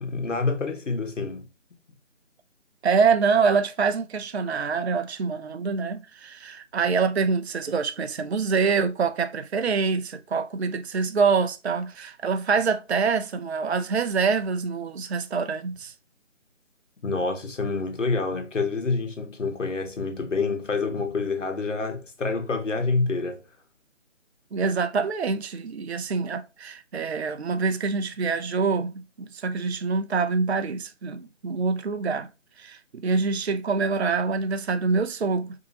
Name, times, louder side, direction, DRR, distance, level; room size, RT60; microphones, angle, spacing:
voice 1, 0.0-1.4 17.0-23.4, left 3 dB, 75° left, 1.4 m, -27 dB
voice 2, 2.8-15.9 24.5-32.3 32.6-35.5, right 5 dB, 60° right, 0.6 m, -25 dB
4.7 x 2.8 x 2.7 m
figure-of-eight pair, 165°, 37 cm